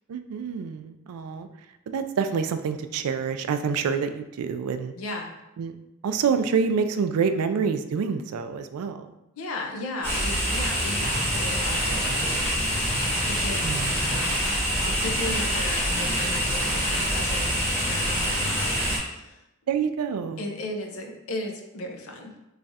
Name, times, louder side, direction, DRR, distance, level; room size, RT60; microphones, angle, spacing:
voice 1, 0.1-1.5 1.9-4.9 5.6-5.8 6.0-9.1 13.6-13.9 19.7-20.4, right 6 dB, 75° right, 9 dB, 0.3 m, -27 dB
voice 2, 5.0-5.3 9.4-19.4 20.4-22.3, left 2 dB, 70° left, 3 dB, 0.6 m, -36 dB
sound 1, 10.0-19.0, equal, 10° left, 0.9 m, -25 dB
3.2 x 2.4 x 4.0 m, 0.92 s
head